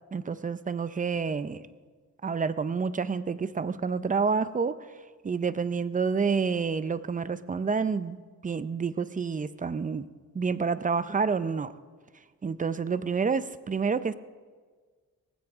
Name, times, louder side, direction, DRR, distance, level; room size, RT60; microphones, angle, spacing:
voice 1, 0.1-1.7 2.2-4.8 5.2-10.1 10.3-11.7 12.4-14.1, right 5 dB, 25° right, 14 dB, 0.5 m, -28 dB
19.0 x 15.5 x 3.6 m, 1.5 s
cardioid pair, 105°, 31 cm